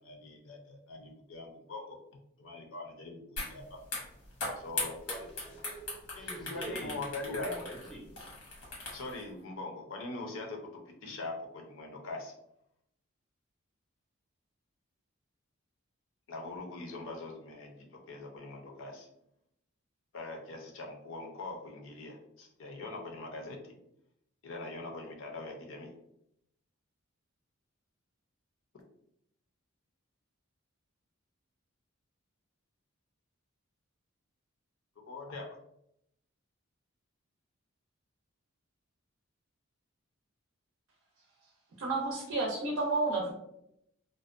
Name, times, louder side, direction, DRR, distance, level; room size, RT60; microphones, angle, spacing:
voice 1, 0.0-2.0 2.4-3.8 4.6-4.9 6.1-7.6 8.9-10.7 11.0-12.3 16.3-19.1 20.1-23.7 24.4-25.9 35.1-35.6, left 2 dB, 65° left, 1 dB, 0.5 m, -42 dB
sound 1, 3.4-3.5 3.8-9.2, left 2 dB, 90° left, 1.1 m, -39 dB
voice 2, 4.8-8.1, right 1 dB, ahead, -4 dB, 0.4 m, -45 dB
voice 3, 41.8-43.3, right 3 dB, 70° right, -1 dB, 0.5 m, -31 dB
2.5 x 2.1 x 2.4 m, 0.77 s
head